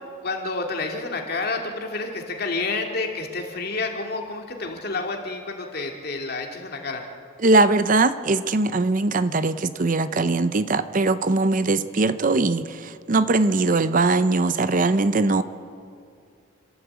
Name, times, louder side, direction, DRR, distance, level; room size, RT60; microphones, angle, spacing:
voice 1, 0.2-7.0, left 3 dB, 50° left, 2 dB, 2.5 m, -29 dB
voice 2, 7.4-15.4, right 3 dB, 40° right, 13 dB, 0.6 m, -21 dB
29.5 x 13.0 x 8.1 m, 2.3 s
head